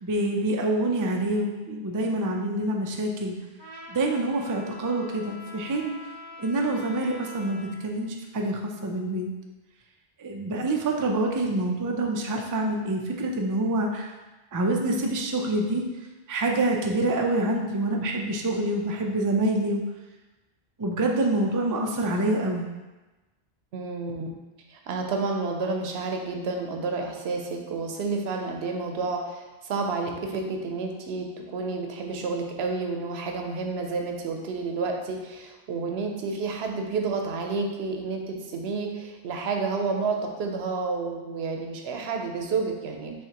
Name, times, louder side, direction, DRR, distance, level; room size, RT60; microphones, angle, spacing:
voice 1, 0.0-3.4 3.9-6.0 6.4-9.3 10.2-14.1 14.5-15.8 16.3-19.8 20.8-22.7, right 1 dB, 35° right, 1 dB, 0.3 m, -26 dB
Trumpet, 3.6-7.8, left 2 dB, 25° left, 0.7 m, -44 dB
voice 2, 23.7-24.4 24.7-43.1, right 4 dB, 85° right, 3 dB, 0.9 m, -30 dB
5.6 x 3.3 x 2.9 m, 1.1 s
omnidirectional pair, 1.0 m